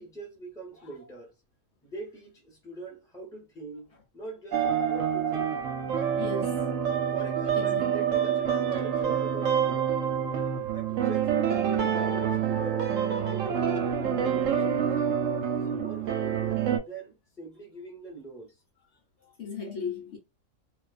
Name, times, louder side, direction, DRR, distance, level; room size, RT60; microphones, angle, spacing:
voice 1, 0.0-1.3 1.8-5.6 7.1-9.9 10.7-14.9 15.5-18.5, right 2 dB, 5° left, 0.9 m, -43 dB
sound 1, 4.5-16.8, right 8 dB, 70° right, 0.9 m, -27 dB
voice 2, 6.1-6.8 7.5-8.0 19.2-20.2, left 4 dB, 60° left, 1.0 m, -36 dB
2.4 x 2.3 x 2.3 m
omnidirectional pair, 1.5 m